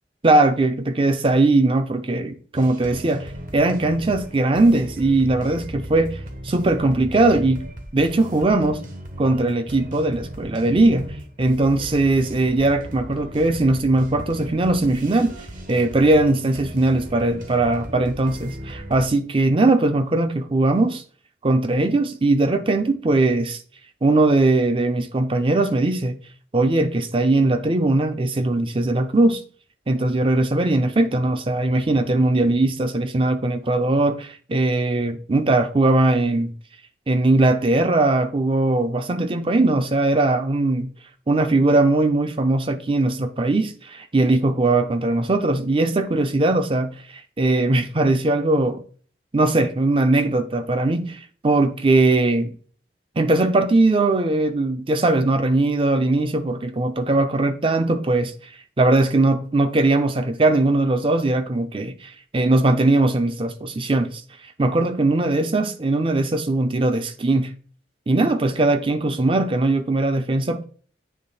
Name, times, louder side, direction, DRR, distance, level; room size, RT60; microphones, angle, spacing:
voice 1, 0.2-6.2 6.4-7.7 7.9-8.8 9.2-11.1 11.4-15.4 15.7-21.0 21.4-23.6 24.0-26.2 26.5-29.4 29.9-36.5 37.1-40.9 41.3-46.9 47.4-48.8 49.3-52.6 53.2-58.3 58.8-64.2 64.6-67.5 68.1-70.6, right 2 dB, 30° right, 0.5 m, -20 dB
sound 1, 2.5-19.1, right 1 dB, 50° right, 0.9 m, -37 dB
8.7 x 3.1 x 4.1 m
head